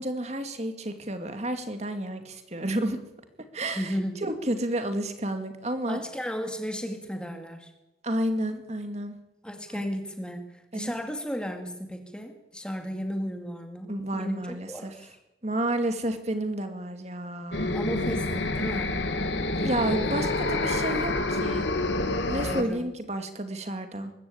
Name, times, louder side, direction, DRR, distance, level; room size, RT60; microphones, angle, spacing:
voice 1, 0.0-3.0 3.5-3.9 4.2-6.0 8.0-9.1 10.7-10.9 13.9-14.9 15.4-17.8 19.5-21.7 22.3-24.1, right 1 dB, 35° right, 7 dB, 2.2 m, -31 dB
voice 2, 3.7-4.2 5.9-7.7 9.4-15.2 17.7-19.0 22.4-22.8, equal, 5° left, 4 dB, 2.2 m, -34 dB
sound 1, 17.5-22.6, left 2 dB, 75° left, 2.0 m, -27 dB
23.0 x 13.5 x 8.7 m, 0.94 s
head